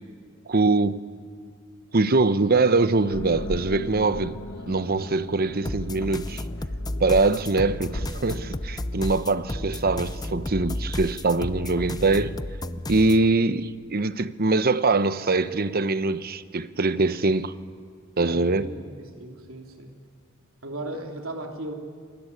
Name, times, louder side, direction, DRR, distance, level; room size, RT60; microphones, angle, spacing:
voice 1, 0.5-1.0 1.9-6.4 7.0-12.4 12.9-17.5 18.2-18.7, right 3 dB, 45° right, 0.9 m, -23 dB
sound 1, 3.0-11.0, left 1 dB, 80° left, 2.4 m, -39 dB
sound 2, 5.6-13.3, left 1 dB, 20° left, 0.7 m, -32 dB
voice 2, 18.2-20.0 20.6-21.7, right 1 dB, 75° right, 3.4 m, -36 dB
28.5 x 19.5 x 9.8 m
head